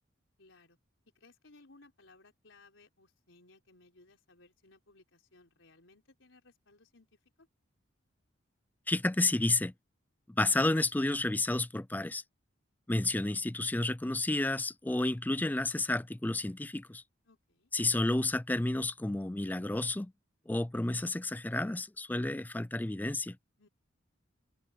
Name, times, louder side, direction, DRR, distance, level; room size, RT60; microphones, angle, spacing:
voice 1, 0.4-0.8 1.1-7.5 17.2-17.7 23.6-23.7, left 2 dB, 75° left, 4.4 m, -61 dB
voice 2, 8.9-9.7 10.3-12.2 12.9-17.0 17.7-20.1 20.5-23.4, left 2 dB, 10° left, 0.4 m, -31 dB
head